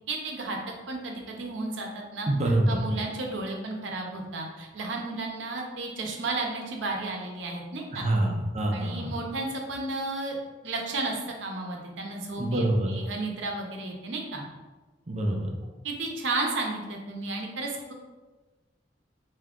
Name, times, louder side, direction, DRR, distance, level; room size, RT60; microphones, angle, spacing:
voice 1, 0.1-0.6 0.9-2.3 2.7-8.1 8.7-10.4 10.6-14.5 15.8-17.9, right 2 dB, 80° right, 1 dB, 0.7 m, -33 dB
voice 2, 2.3-2.9 7.9-9.1 12.4-12.9 15.1-15.5, right 1 dB, 40° right, 0 dB, 0.6 m, -26 dB
3.5 x 2.7 x 3.6 m, 1.2 s
head